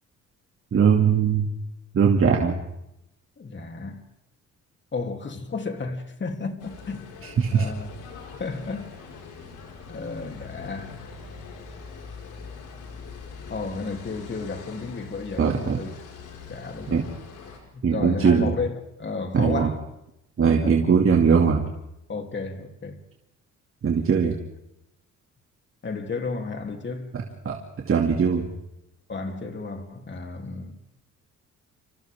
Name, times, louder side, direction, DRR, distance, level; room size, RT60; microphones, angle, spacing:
voice 1, 0.7-1.5 1.9-2.6 7.4-7.6 15.4-15.8 16.9-17.0 17.8-18.5 19.3-19.7 20.4-21.7 23.8-24.3 27.4-27.6 27.9-28.5, right 6 dB, 45° right, 2.5 m, -20 dB
voice 2, 3.4-4.0 4.9-7.9 8.3-9.1 9.9-11.1 13.5-15.9 16.5-17.0 17.7-19.8 20.6-20.8 22.1-23.0 25.8-27.2 29.1-30.8, left 4 dB, 40° left, 3.3 m, -33 dB
sound 1, 6.6-17.6, left 5 dB, 90° left, 5.3 m, -42 dB
30.0 x 27.0 x 3.7 m
cardioid pair, 90°, 30 cm